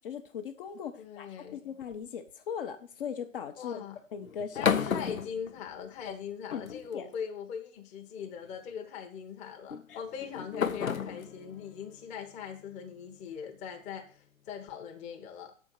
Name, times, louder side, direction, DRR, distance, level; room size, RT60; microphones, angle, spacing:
voice 1, 0.0-3.8 4.1-4.7 6.5-6.6 6.9-7.1 9.9-10.0, left 7 dB, 45° left, 6 dB, 0.9 m, -39 dB
voice 2, 1.0-1.6 3.6-4.0 4.5-15.5, left 7 dB, 15° left, 3 dB, 0.9 m, -41 dB
sound 1, 1.8-2.3 4.2-6.1 6.5-7.2 8.2-8.5 9.7-13.0, left 7 dB, 90° left, 0.7 m, -34 dB
6.3 x 4.5 x 6.2 m, 0.40 s
figure-of-eight pair, 120°, 40 cm